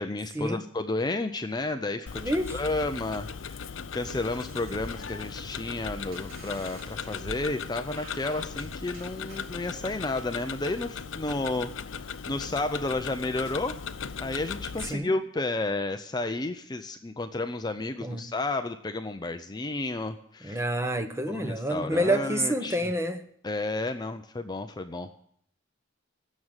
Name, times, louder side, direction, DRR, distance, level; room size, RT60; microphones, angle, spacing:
voice 1, 0.0-13.8 14.2-20.6 21.3-22.9 23.4-25.2, left 2 dB, 20° left, 0.6 m, -32 dB
Tick-tock, 2.1-14.9, left 6 dB, 65° left, 0.6 m, -38 dB
voice 2, 2.2-2.6 14.9-15.1 18.0-18.3 20.4-23.2, right 1 dB, 15° right, 1.0 m, -28 dB
sound 1, 4.0-9.6, equal, 85° right, 4.3 m, -46 dB
16.0 x 6.3 x 8.9 m
head